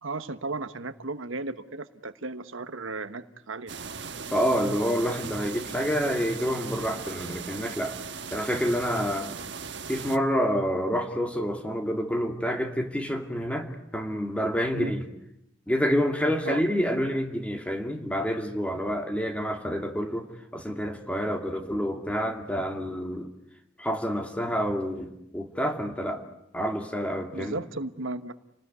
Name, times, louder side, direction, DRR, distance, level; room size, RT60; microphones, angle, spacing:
voice 1, 0.0-3.7 14.7-14.9 16.4-16.6 27.3-28.3, right 3 dB, 85° right, 11 dB, 1.2 m, -35 dB
sound 1, 3.7-10.2, right 5 dB, 60° right, 1.4 m, -38 dB
voice 2, 4.3-8.0 8.3-9.3 9.9-13.7 13.9-15.1 15.7-20.3 20.5-23.3 23.8-26.2 26.5-27.6, equal, 5° left, 4 dB, 2.5 m, -28 dB
29.5 x 19.5 x 9.5 m, 0.82 s
head